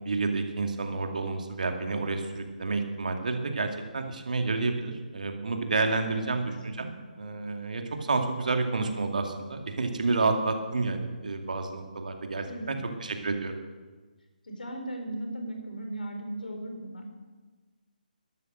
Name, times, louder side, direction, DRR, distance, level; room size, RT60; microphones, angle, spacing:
voice 1, 0.1-6.9 7.2-12.8 13.0-13.6, right 3 dB, 60° right, 5 dB, 2.2 m, -30 dB
voice 2, 6.1-6.5 12.5-12.8 14.4-17.1, right 1 dB, 70° left, 3 dB, 4.1 m, -37 dB
13.0 x 12.5 x 6.5 m, 1.3 s
figure-of-eight pair, 140°, 5 cm